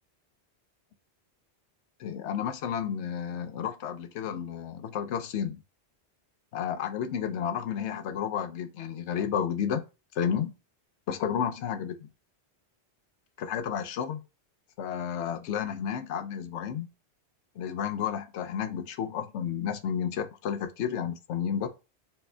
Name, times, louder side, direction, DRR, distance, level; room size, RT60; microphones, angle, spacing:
voice 1, 2.0-5.6 6.5-9.8 10.1-10.5 11.1-12.1 13.4-14.2 14.8-16.9 17.6-21.7, left 8 dB, 85° left, 0.9 m, -31 dB
4.2 x 3.1 x 2.2 m
omnidirectional pair, 1.1 m